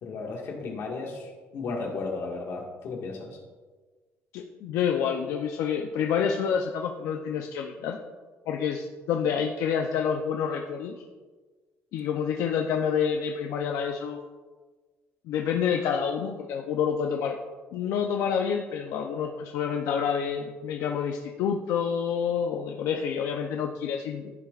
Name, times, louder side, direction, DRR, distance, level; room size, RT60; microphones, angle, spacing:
voice 1, 0.0-3.4, left 3 dB, 55° left, -1 dB, 1.8 m, -34 dB
voice 2, 4.3-8.0 8.5-11.0 11.9-14.2 15.3-17.3 17.7-24.3, left 7 dB, 80° left, 2 dB, 0.6 m, -28 dB
14.5 x 5.9 x 2.5 m, 1.4 s
cardioid pair, 165°, 5 cm